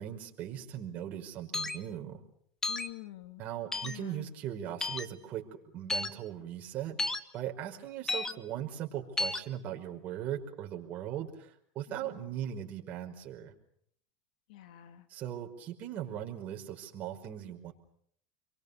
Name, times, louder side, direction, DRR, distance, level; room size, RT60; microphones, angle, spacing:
voice 1, 0.0-2.2 3.4-7.0 7.3-13.5 15.1-17.7, right 10 dB, 40° right, 1 dB, 5.3 m, -39 dB
sound 1, 1.5-1.8 2.6-2.9 3.7-4.0 4.8-5.1 5.9-6.1 7.0-7.2 8.1-8.3 9.2-9.4, left 3 dB, 10° left, 1.4 m, -32 dB
voice 2, 2.7-3.4 3.8-4.3 12.0-12.2 14.5-15.0, left 15 dB, 80° left, 9 dB, 2.8 m, -47 dB
29.0 x 23.5 x 7.0 m, 0.68 s
supercardioid pair, 135°, 4 cm